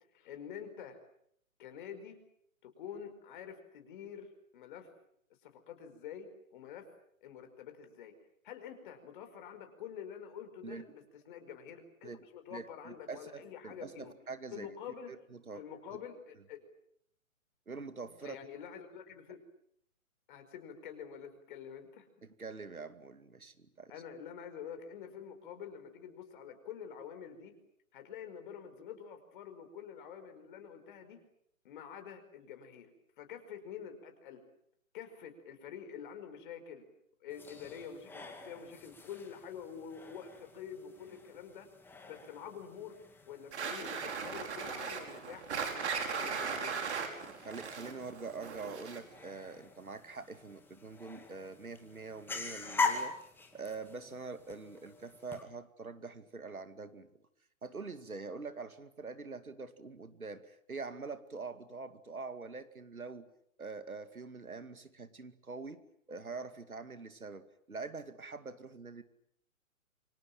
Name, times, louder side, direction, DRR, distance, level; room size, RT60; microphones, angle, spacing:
voice 1, 0.1-1.0 1.6-2.2 2.6-4.9 5.4-6.9 7.2-8.1 8.4-14.1 14.5-15.1 15.6-16.6 18.2-19.4 20.3-22.1 23.9-27.5 27.9-31.2 31.6-32.9 33.2-34.4 34.9-36.8 37.2-41.7 42.0-43.0 43.3-46.7, left 8 dB, 35° left, 7 dB, 5.1 m, -47 dB
voice 2, 12.5-14.7 15.1-15.6 17.7-18.4 22.2-23.9 47.4-53.2 53.5-57.1 57.6-63.3 63.6-65.8 66.1-69.0, right 4 dB, 80° right, 11 dB, 2.4 m, -44 dB
sound 1, 37.3-55.4, left 4 dB, 5° left, 2.3 m, -43 dB
sound 2, 43.5-49.2, right 5 dB, 50° right, 5.5 m, -38 dB
28.0 x 25.0 x 7.6 m, 0.71 s
figure-of-eight pair, 135°, 42 cm